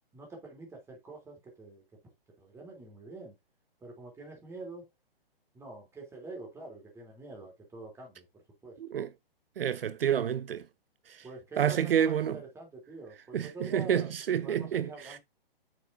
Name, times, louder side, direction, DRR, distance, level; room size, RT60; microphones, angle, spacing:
voice 1, 0.1-1.8 2.4-3.4 3.8-4.9 5.5-8.8 11.2-14.1 14.4-15.2, right 3 dB, 10° right, 3.1 m, -46 dB
voice 2, 9.6-10.7 11.1-11.2 11.6-12.4 13.3-15.2, right 9 dB, 70° right, 0.7 m, -29 dB
8.5 x 7.1 x 2.6 m
hypercardioid pair, 140°, 30 cm